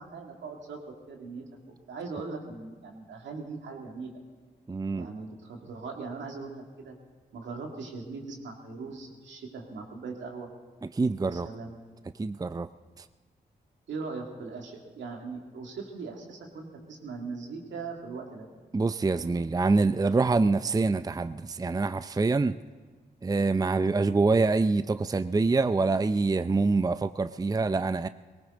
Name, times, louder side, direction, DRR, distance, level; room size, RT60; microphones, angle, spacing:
voice 1, 0.0-1.4 1.9-4.1 4.9-6.9 7.3-10.5 11.2-11.8 13.9-18.5, right 4 dB, 75° right, 1 dB, 2.4 m, -40 dB
voice 2, 4.7-5.1 10.9-11.5 12.2-12.7 18.7-22.6 23.2-28.1, right 3 dB, 20° right, 13 dB, 0.5 m, -25 dB
19.0 x 18.0 x 3.9 m, 1.4 s
supercardioid pair, 40°, 19 cm